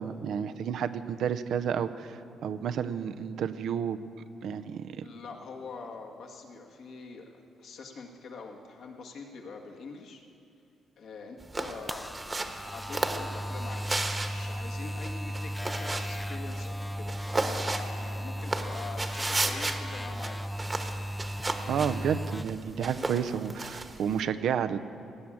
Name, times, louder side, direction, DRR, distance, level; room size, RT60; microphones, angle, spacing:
voice 1, 0.0-4.0 4.4-5.0 21.7-24.8, right 8 dB, 70° right, 11 dB, 0.6 m, -31 dB
voice 2, 5.0-10.2 11.0-12.1 12.6-20.4, left 4 dB, 70° left, 0 dB, 1.8 m, -44 dB
sound 1, 11.4-24.2, right 2 dB, 20° right, 1.2 m, -35 dB
sound 2, 11.6-22.4, equal, 5° left, 0.4 m, -36 dB
18.0 x 7.4 x 8.5 m, 2.6 s
cardioid pair, 90°, 0 cm